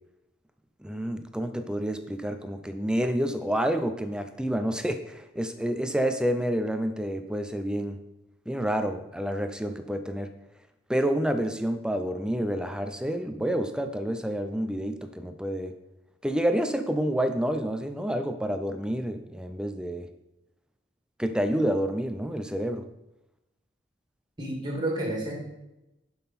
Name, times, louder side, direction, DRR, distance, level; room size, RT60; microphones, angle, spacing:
voice 1, 0.8-8.0 8.5-10.3 10.9-15.7 16.2-20.1 21.2-22.8, equal, 5° right, 8 dB, 0.6 m, -28 dB
voice 2, 24.4-25.3, right 1 dB, 25° right, -1 dB, 2.2 m, -30 dB
11.0 x 5.7 x 4.2 m, 0.94 s
head